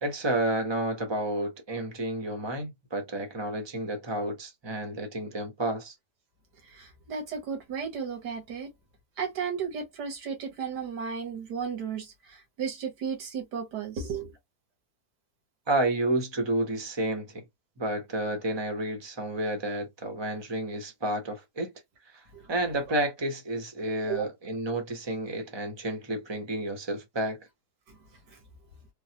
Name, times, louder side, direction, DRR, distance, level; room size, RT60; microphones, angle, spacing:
voice 1, 0.0-5.9 15.7-17.4 17.8-21.7 22.1-22.2 22.5-27.5, right 1 dB, 25° right, 0.6 m, -30 dB
voice 2, 6.7-8.7 9.2-14.3 22.3-22.5 24.1-24.3, right 6 dB, 85° right, 1.8 m, -34 dB
3.8 x 2.0 x 2.7 m
omnidirectional pair, 1.7 m